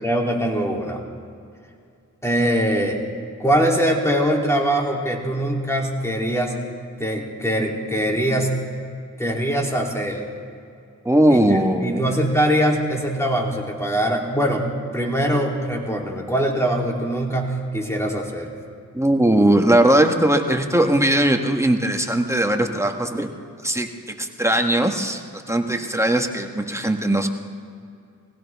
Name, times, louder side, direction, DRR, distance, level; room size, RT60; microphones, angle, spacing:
voice 1, 0.0-1.0 2.2-3.0 3.4-6.6 7.0-8.5 9.2-10.2 11.3-11.4 11.8-18.5, equal, 10° left, -1 dB, 3.1 m, -22 dB
voice 2, 11.0-12.2 18.9-23.3 23.6-23.9 24.2-27.3, right 1 dB, 10° right, 3 dB, 1.4 m, -19 dB
22.5 x 16.5 x 3.6 m, 2.4 s
cardioid pair, 55°, 33 cm